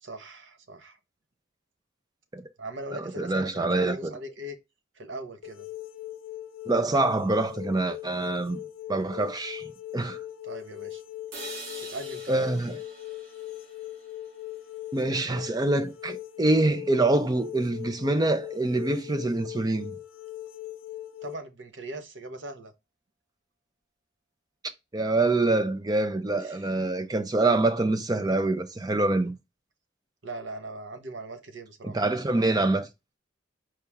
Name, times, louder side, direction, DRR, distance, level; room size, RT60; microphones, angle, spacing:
voice 1, 0.0-1.0 2.6-4.6 5.0-5.7 10.4-11.0 11.8-12.4 21.2-22.7 26.4-26.6 30.2-32.1, right 1 dB, 60° right, 0.8 m, -40 dB
voice 2, 2.9-4.0 6.7-8.6 8.9-9.6 9.9-10.2 12.3-12.8 14.9-19.9 24.9-29.3 31.8-32.9, right 2 dB, 20° right, 0.5 m, -25 dB
sound 1, 5.4-21.3, left 13 dB, 80° left, 0.4 m, -40 dB
sound 2, 11.3-15.3, right 2 dB, 80° right, 2.0 m, -45 dB
4.6 x 2.9 x 3.5 m
head